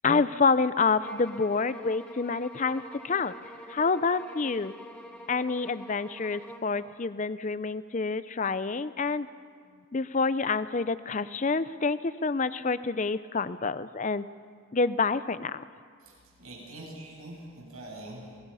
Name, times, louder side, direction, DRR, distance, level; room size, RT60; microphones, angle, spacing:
voice 1, 0.0-3.3 3.7-4.7 5.3-9.3 9.9-14.3 14.7-15.6, left 4 dB, 35° left, 14 dB, 0.5 m, -27 dB
sound 1, 1.0-6.8, equal, 5° left, 2.0 m, -47 dB
voice 2, 16.0-18.4, right 1 dB, 85° right, -2 dB, 7.3 m, -44 dB
28.0 x 19.0 x 5.6 m, 2.1 s
head